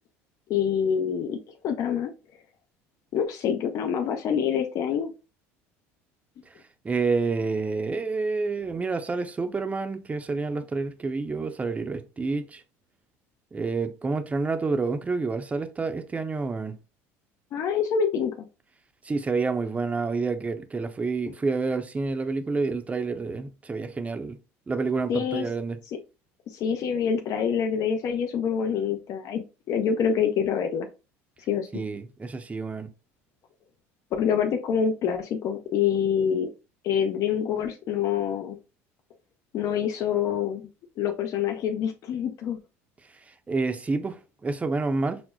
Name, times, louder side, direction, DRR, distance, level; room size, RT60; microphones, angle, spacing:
voice 1, 0.5-1.4 1.6-2.1 3.1-5.1 17.5-18.5 25.1-25.4 25.9-26.0 26.5-30.9 31.5-31.7 34.2-36.5 36.8-38.6 39.5-40.6 41.0-42.6, left 7 dB, 55° left, 0.6 m, -26 dB
voice 2, 6.8-12.6 13.5-16.7 19.0-24.4 24.7-25.8 31.7-32.9 43.3-45.2, right 4 dB, 20° right, 0.6 m, -28 dB
5.9 x 2.0 x 2.2 m
supercardioid pair, 90°, 7 cm